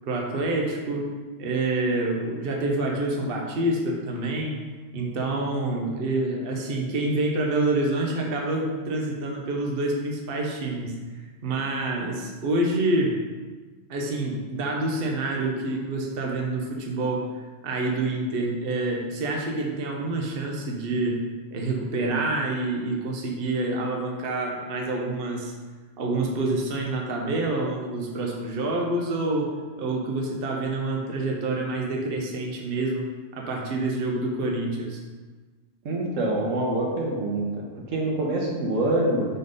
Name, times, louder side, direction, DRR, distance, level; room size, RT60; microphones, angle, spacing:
voice 1, 0.0-1.1 1.4-4.6 4.9-11.0 11.4-13.2 13.9-21.2 21.5-25.5 26.0-35.0, right 2 dB, 50° right, -1 dB, 1.1 m, -27 dB
voice 2, 35.8-37.5 37.9-39.3, right 1 dB, 85° right, -2 dB, 1.5 m, -25 dB
5.8 x 3.9 x 5.4 m, 1.4 s
omnidirectional pair, 1.3 m